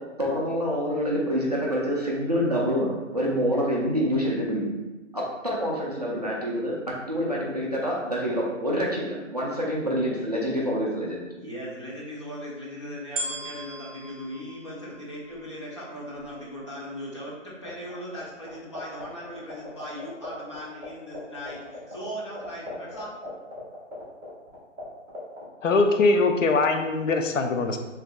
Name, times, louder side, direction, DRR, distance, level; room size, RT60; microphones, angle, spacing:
voice 1, 0.2-4.7 5.1-11.2, equal, 30° right, -4 dB, 0.4 m, -27 dB
voice 2, 11.4-23.1, equal, 25° left, -6 dB, 0.6 m, -38 dB
sound 1, 13.2-15.5 16.2-16.3, right 1 dB, 70° right, 1.0 m, -37 dB
sound 2, 17.6-18.2 18.5-20.6 20.8-20.9 21.1-24.8 25.1-25.4, equal, 10° right, 1.3 m, -39 dB
voice 3, 25.6-27.8, left 3 dB, 70° left, 5 dB, 0.6 m, -22 dB
6.3 x 2.6 x 2.2 m, 1.2 s
hypercardioid pair, 170°, 39 cm